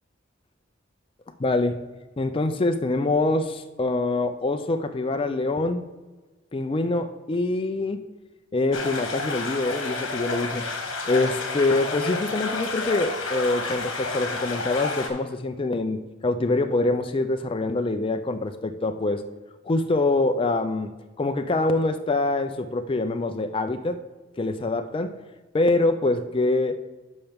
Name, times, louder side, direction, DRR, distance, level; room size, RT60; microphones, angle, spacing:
voice 1, 1.4-1.7 2.2-5.9 6.5-8.0 8.5-10.7 11.1-19.2 19.6-20.9 21.2-24.0 24.4-25.2 25.5-26.8, left 2 dB, 25° left, 7 dB, 0.4 m, -25 dB
sound 1, 8.7-15.1, left 3 dB, 70° left, 1.4 m, -30 dB
11.0 x 5.8 x 3.5 m, 1.2 s
head